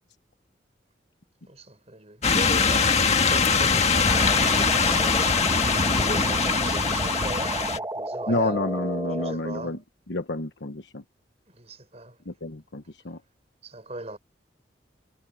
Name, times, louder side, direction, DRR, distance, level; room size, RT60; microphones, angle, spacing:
voice 1, 1.5-8.6 9.1-9.8 11.5-12.2 13.6-14.2, right 2 dB, 35° right, 5.4 m, -39 dB
sound 1, 2.2-7.8, left 5 dB, 35° left, 1.6 m, -22 dB
sound 2, 4.1-9.3, right 2 dB, 20° right, 1.9 m, -32 dB
voice 2, 8.3-9.8 10.1-11.0 12.3-13.2, left 2 dB, 80° left, 1.2 m, -29 dB
head